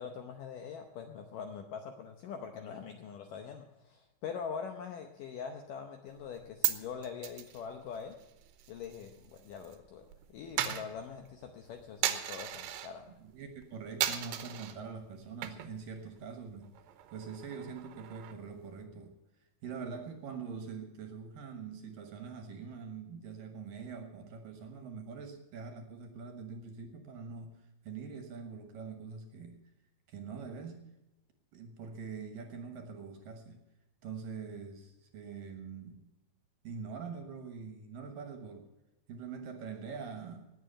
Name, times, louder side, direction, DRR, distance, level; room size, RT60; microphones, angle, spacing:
voice 1, 0.0-8.2 8.7-13.1, left 6 dB, 75° left, 5 dB, 2.0 m, -43 dB
Coin (dropping), 6.2-9.8 10.0-12.9 13.4-13.6 14.0-14.8 15.2-15.9 16.2-16.3 16.6-18.5, right 12 dB, 80° right, 3.0 m, -37 dB
voice 2, 13.2-16.7 17.1-19.2 19.6-27.6 27.8-29.6 30.1-30.8 31.5-33.6 34.0-36.1 36.6-38.7 39.1-40.5, right 5 dB, 65° right, 6 dB, 2.6 m, -44 dB
19.0 x 7.6 x 6.7 m, 0.99 s
omnidirectional pair, 4.8 m